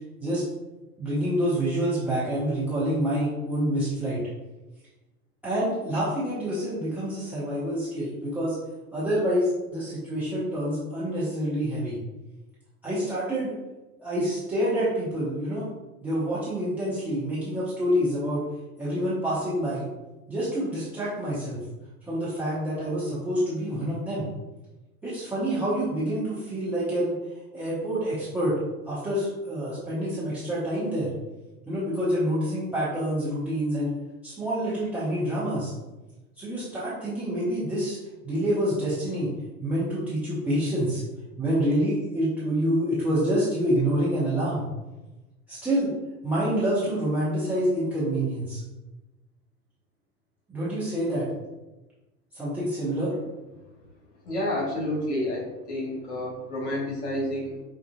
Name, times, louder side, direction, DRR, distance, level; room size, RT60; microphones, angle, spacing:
voice 1, 1.0-4.2 5.4-8.6 8.9-12.0 12.8-13.5 14.0-15.7 16.0-18.4 18.8-19.9 20.3-21.6 22.1-24.3 25.0-27.1 27.5-28.6 28.9-31.1 31.7-33.9 34.2-35.7 36.4-38.0 38.2-39.3 39.6-41.0 41.4-44.6 45.5-45.9 46.2-48.6 50.5-51.3 52.3-53.1, equal, 5° right, -10 dB, 0.4 m, -27 dB
voice 2, 54.2-57.6, left 1 dB, 50° left, -3 dB, 1.3 m, -29 dB
4.7 x 2.4 x 2.2 m, 1.1 s
figure-of-eight pair, 95°, 43 cm